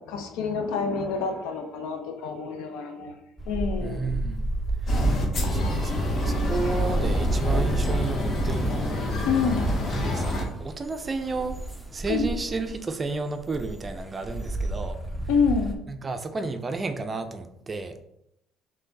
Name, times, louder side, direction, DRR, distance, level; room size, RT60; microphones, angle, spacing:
voice 1, 0.0-3.1 3.5-4.1 5.4-5.5 9.2-9.7 12.1-12.3 15.3-15.8, left 5 dB, 80° left, 6 dB, 0.6 m, -27 dB
sound 1, 3.4-15.7, right 2 dB, 5° left, 0.7 m, -30 dB
voice 2, 3.8-4.4 4.8-4.9 5.5-9.0 9.4-9.5 9.8-11.6 11.9-15.0 15.9-18.0, right 3 dB, 30° right, 8 dB, 0.4 m, -32 dB
sound 2, 4.9-10.5, left 1 dB, 50° left, 0.9 m, -28 dB
3.4 x 3.2 x 3.9 m, 0.81 s
supercardioid pair, 85°, 0 cm